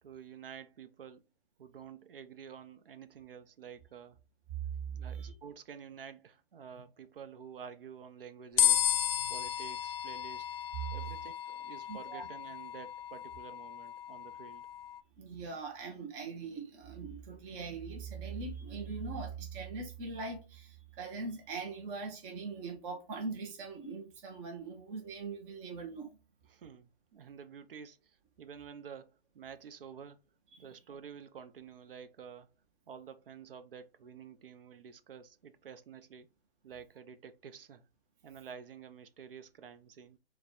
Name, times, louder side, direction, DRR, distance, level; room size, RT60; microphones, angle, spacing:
voice 1, 0.0-1.3 1.6-4.2 4.9-8.9 9.3-10.5 10.9-14.7 26.5-30.2 30.6-32.5 32.9-36.3 36.6-37.9 38.2-40.2, right 7 dB, 60° right, 0.6 m, -50 dB
voice 2, 4.6-5.3 9.2-9.3 10.8-11.0 11.9-12.3 15.2-26.1 30.5-30.7, right 4 dB, 15° right, 0.5 m, -41 dB
sound 1, 8.6-15.0, left 11 dB, 60° left, 0.5 m, -34 dB
4.1 x 2.1 x 4.2 m
hypercardioid pair, 140°, 32 cm